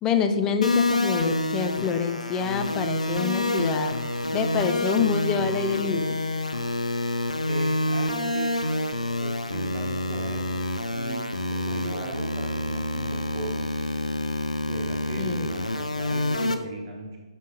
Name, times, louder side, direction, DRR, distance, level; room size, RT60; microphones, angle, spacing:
voice 1, 0.0-4.0 4.3-6.2 15.2-15.5, left 6 dB, 15° left, 7 dB, 0.4 m, -26 dB
sound 1, 0.6-16.5, left 2 dB, 80° left, 0.6 m, -28 dB
voice 2, 7.5-8.5 9.2-10.6 10.9-13.7 14.7-17.1, right 2 dB, 30° right, 0 dB, 1.1 m, -37 dB
6.6 x 5.2 x 3.8 m, 1.3 s
figure-of-eight pair, 140°, 4 cm